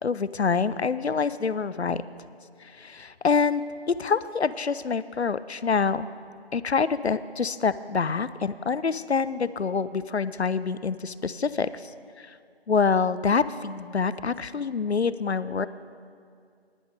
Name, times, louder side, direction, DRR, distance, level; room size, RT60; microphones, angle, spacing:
voice 1, 0.0-2.0 2.6-3.6 4.0-6.1 6.5-11.9 12.2-12.3 12.7-15.7, left 5 dB, 85° left, 15 dB, 0.5 m, -26 dB
11.5 x 10.0 x 5.0 m, 2.2 s
figure-of-eight pair, 175°, 32 cm